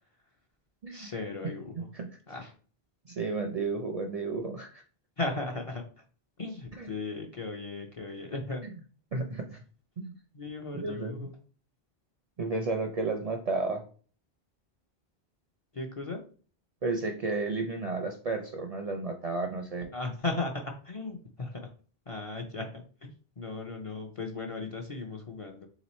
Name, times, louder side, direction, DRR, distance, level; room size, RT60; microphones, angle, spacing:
voice 1, 0.9-1.8 2.3-2.5 5.2-5.8 6.4-8.6 10.3-11.3 15.7-16.2 19.9-21.7 22.1-23.1 23.4-25.7, left 3 dB, 40° left, 2 dB, 0.5 m, -36 dB
voice 2, 1.8-2.1 3.1-4.8 6.8-6.9 9.1-9.6 10.0-10.1 10.7-11.3 12.4-13.8 16.8-19.9, right 3 dB, 50° right, 3 dB, 0.4 m, -32 dB
3.5 x 3.0 x 4.1 m, 0.40 s
omnidirectional pair, 1.1 m